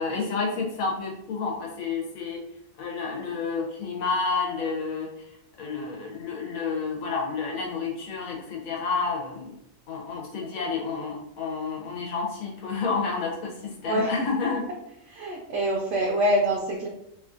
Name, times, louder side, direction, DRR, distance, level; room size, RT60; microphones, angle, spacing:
voice 1, 0.0-2.4 2.8-5.1 5.6-9.5 9.9-14.6, left 4 dB, 85° left, 0 dB, 1.2 m, -30 dB
voice 2, 13.8-14.3 15.1-16.9, right 1 dB, 65° right, -1 dB, 0.8 m, -25 dB
2.9 x 2.5 x 2.5 m, 0.78 s
omnidirectional pair, 1.4 m